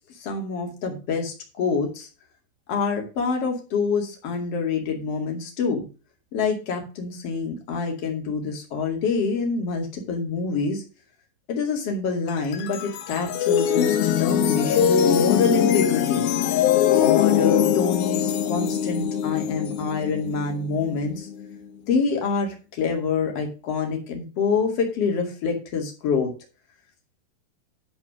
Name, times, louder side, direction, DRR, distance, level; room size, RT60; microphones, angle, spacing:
voice 1, 0.2-2.1 2.7-5.8 6.3-10.8 11.5-16.2 17.0-21.3 21.9-26.3, left 5 dB, 40° left, 2 dB, 3.1 m, -26 dB
sound 1, 12.3-21.5, left 9 dB, 70° left, 2.6 m, -22 dB
11.0 x 5.0 x 6.4 m, 0.34 s
omnidirectional pair, 4.8 m